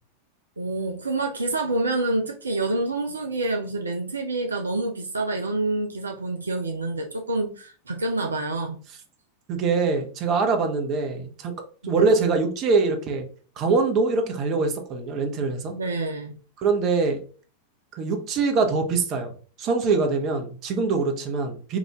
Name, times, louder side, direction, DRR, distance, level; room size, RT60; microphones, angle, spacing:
voice 1, 0.6-8.8 11.8-12.1 15.7-16.4, right 2 dB, 75° right, 4 dB, 0.5 m, -27 dB
voice 2, 9.5-11.5 11.8-13.2 13.6-15.7 16.6-17.2 17.9-19.3 19.6-21.8, right 4 dB, 35° right, 5 dB, 1.0 m, -23 dB
4.8 x 2.6 x 3.5 m, 0.39 s
figure-of-eight pair, 90°, 0 cm